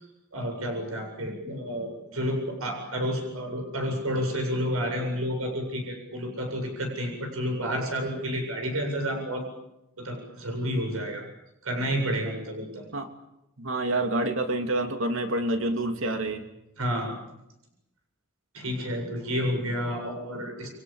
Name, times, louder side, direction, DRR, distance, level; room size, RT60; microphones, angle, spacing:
voice 1, 0.3-9.4 10.0-11.2 11.6-12.8 16.8-17.1 18.5-20.7, equal, 90° right, 3 dB, 7.9 m, -30 dB
voice 2, 13.6-16.4, right 2 dB, 65° right, 5 dB, 3.0 m, -27 dB
30.0 x 24.5 x 7.4 m, 0.89 s
head